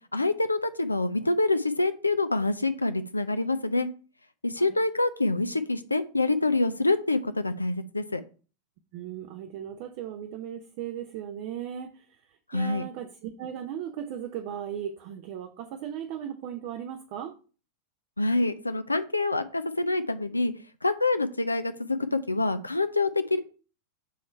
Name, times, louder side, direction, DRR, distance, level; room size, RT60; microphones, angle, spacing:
voice 1, 0.1-3.9 4.4-8.2 12.5-12.8 18.2-20.5 20.8-23.4, left 2 dB, 80° left, 0.4 m, -26 dB
voice 2, 8.9-12.2 12.5-17.3, right 9 dB, 45° right, 0.5 m, -37 dB
6.9 x 3.1 x 4.3 m
figure-of-eight pair, 90°, 0 cm